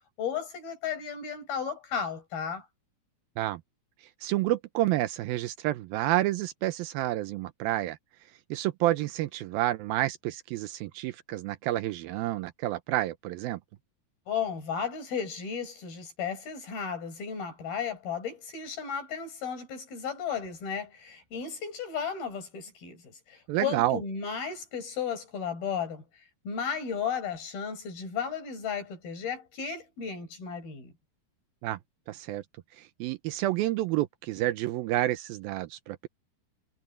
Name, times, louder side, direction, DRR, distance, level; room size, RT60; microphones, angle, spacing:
voice 1, 0.2-2.7 14.3-30.9, left 7 dB, 75° left, 7.9 m, -34 dB
voice 2, 4.2-8.0 8.5-13.6 23.5-24.0 31.6-31.8 32.1-32.4 32.8-36.1, right 15 dB, 80° right, 2.5 m, -29 dB
omnidirectional pair, 4.3 m